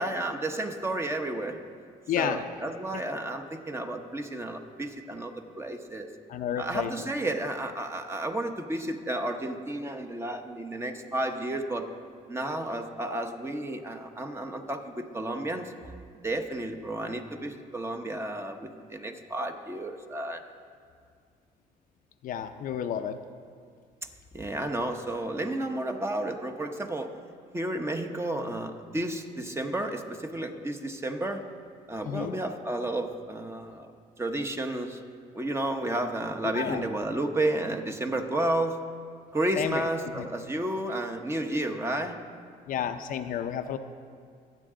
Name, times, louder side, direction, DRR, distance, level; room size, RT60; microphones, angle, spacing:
voice 1, 0.0-1.6 2.2-6.1 6.6-11.9 12.3-15.9 16.2-20.4 24.3-27.1 27.5-31.4 31.9-33.9 34.2-35.0 35.3-38.8 39.3-42.2, right 1 dB, 15° right, 5 dB, 1.0 m, -32 dB
voice 2, 2.1-2.4 6.3-6.9 22.2-23.2 32.0-32.4 36.5-36.8 39.6-40.3 42.7-43.8, left 9 dB, 60° left, 8 dB, 0.6 m, -31 dB
24.0 x 9.0 x 3.8 m, 2.1 s
cardioid pair, 115°, 16 cm